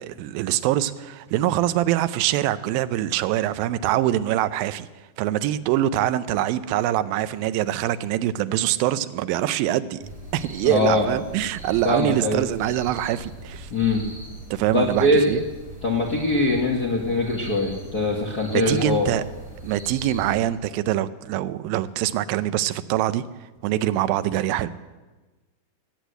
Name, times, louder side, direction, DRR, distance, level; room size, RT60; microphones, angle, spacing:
voice 1, 0.0-4.9 5.2-10.0 10.3-13.7 14.5-15.4 18.5-19.2 19.6-23.2 23.6-24.7, right 13 dB, 85° right, 14 dB, 2.4 m, -24 dB
sound 1, 10.0-20.4, right 1 dB, ahead, 5.0 m, -40 dB
voice 2, 10.6-11.1 11.8-12.4 13.7-14.0 14.7-15.2 15.8-19.1, left 2 dB, 55° left, -1 dB, 1.0 m, -22 dB
19.5 x 8.3 x 8.1 m, 1.2 s
omnidirectional pair, 4.2 m